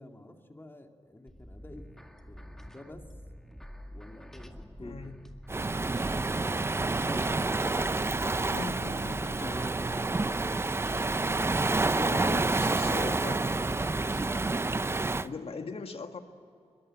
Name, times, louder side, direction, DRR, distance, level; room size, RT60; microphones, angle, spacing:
voice 1, 0.0-1.9 2.2-3.0 3.9-4.5 4.8-5.1 6.4-10.3 11.2-13.7, left 1 dB, 20° left, 4 dB, 2.4 m, -47 dB
sound 1, 1.3-14.3, equal, 5° left, 1.9 m, -47 dB
voice 2, 4.8-5.2 8.5-9.6 12.1-13.5 15.2-16.2, left 4 dB, 60° left, 6 dB, 1.9 m, -40 dB
Waves surf, 5.5-15.3, right 3 dB, 20° right, 0.6 m, -29 dB
22.0 x 22.0 x 8.8 m, 2.4 s
wide cardioid pair, 95°, 11 cm